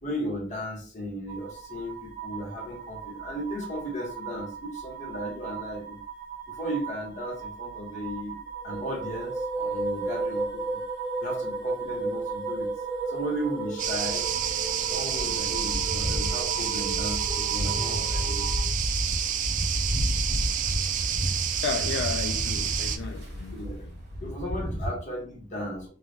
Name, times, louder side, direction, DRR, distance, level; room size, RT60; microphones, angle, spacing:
voice 1, 0.0-6.0 6.5-8.4 8.6-10.8 11.2-12.7 13.1-14.3 14.8-18.4 23.2-23.9 24.2-25.9, equal, 40° left, 1.1 m, -35 dB
sound 1, 1.3-18.6, right 4 dB, 15° right, 1.3 m, -35 dB
sound 2, 13.8-23.0, right 9 dB, 45° right, 0.3 m, -29 dB
sound 3, 15.2-24.9, equal, 65° right, 1.5 m, -32 dB
voice 2, 21.6-23.6 24.2-24.3, left 5 dB, 70° left, 0.3 m, -33 dB
3.3 x 2.3 x 2.8 m
head